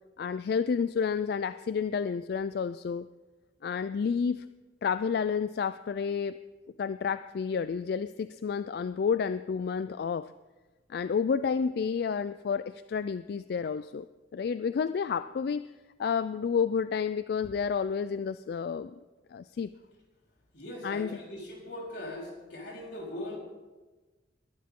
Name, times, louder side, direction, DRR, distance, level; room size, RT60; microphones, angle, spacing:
voice 1, 0.2-3.1 3.6-4.5 4.8-6.4 6.8-10.3 10.9-14.1 14.3-15.7 16.0-19.0 19.3-19.7 20.8-21.2, left 6 dB, 60° left, 13 dB, 0.3 m, -30 dB
voice 2, 20.5-23.4, left 1 dB, 85° left, -3 dB, 4.4 m, -40 dB
21.0 x 11.0 x 3.7 m, 1.2 s
head